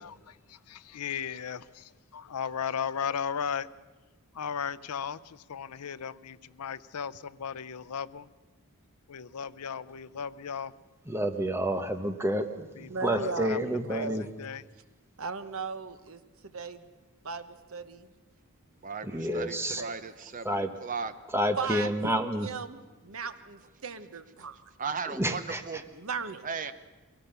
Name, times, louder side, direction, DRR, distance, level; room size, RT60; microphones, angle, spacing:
voice 1, 0.0-3.7 4.3-8.3 9.1-10.7 12.8-13.6 13.9-14.1 14.4-14.6, left 7 dB, 90° left, 0.6 m, -36 dB
voice 2, 11.1-14.2 19.1-19.8 20.4-20.7 21.3-22.5 25.2-25.6, equal, 10° right, 1.1 m, -29 dB
voice 3, 12.9-14.2 15.2-16.9 17.2-18.1 19.8-19.9 21.6-22.1 22.4-24.6 25.9-26.4, right 4 dB, 65° right, 1.1 m, -37 dB
voice 4, 18.8-21.1 24.8-25.9 26.4-26.7, right 5 dB, 35° right, 0.9 m, -36 dB
22.5 x 17.5 x 6.8 m
head